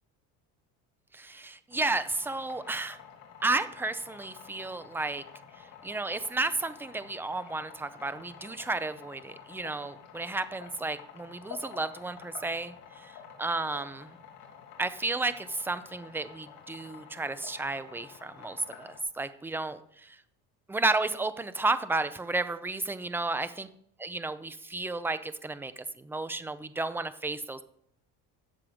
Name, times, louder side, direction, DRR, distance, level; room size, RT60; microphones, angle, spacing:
voice 1, 1.1-3.0 3.4-5.2 5.6-14.2 14.8-20.2 20.7-23.7 24.0-27.6, right 3 dB, 5° right, 12 dB, 0.5 m, -32 dB
sound 1, 1.7-19.0, left 7 dB, 55° left, 2.5 m, -50 dB
13.5 x 7.8 x 5.1 m, 0.70 s
cardioid pair, 145°, 36 cm